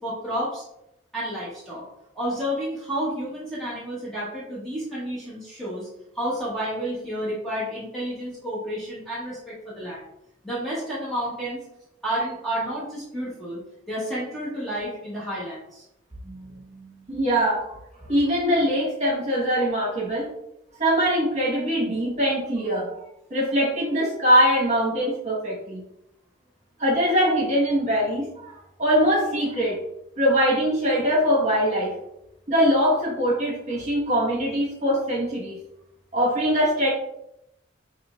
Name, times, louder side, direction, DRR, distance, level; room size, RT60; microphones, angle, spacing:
voice 1, 0.0-0.6 1.1-1.8 2.1-5.9 6.1-10.0 10.4-11.6 12.0-13.6 13.9-15.8, equal, ahead, -9 dB, 1.1 m, -30 dB
voice 2, 16.7-17.6 18.1-20.3 20.8-22.9 23.3-25.8 26.8-28.5 28.8-29.8 30.2-31.9 32.5-35.6 36.1-36.9, equal, 35° right, -5 dB, 1.4 m, -22 dB
5.7 x 3.1 x 2.5 m, 0.82 s
head